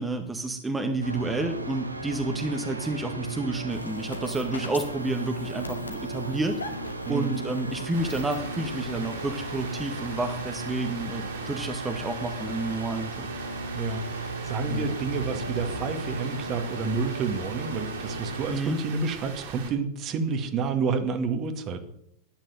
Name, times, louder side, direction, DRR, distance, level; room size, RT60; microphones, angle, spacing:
voice 1, 0.0-6.6 7.1-13.3 14.7-14.9 18.5-18.8, right 2 dB, 10° right, 5 dB, 1.7 m, -30 dB
sound 1, 1.0-18.6, right 2 dB, 85° right, 1.8 m, -36 dB
sound 2, 3.7-10.7, left 3 dB, 75° left, 2.3 m, -44 dB
voice 2, 7.0-7.4 13.7-21.8, right 4 dB, 35° right, 7 dB, 2.2 m, -29 dB
Rain, 7.9-19.7, right 6 dB, 50° right, 3.9 m, -41 dB
12.0 x 10.5 x 9.4 m, 0.76 s
figure-of-eight pair, 90°, 0 cm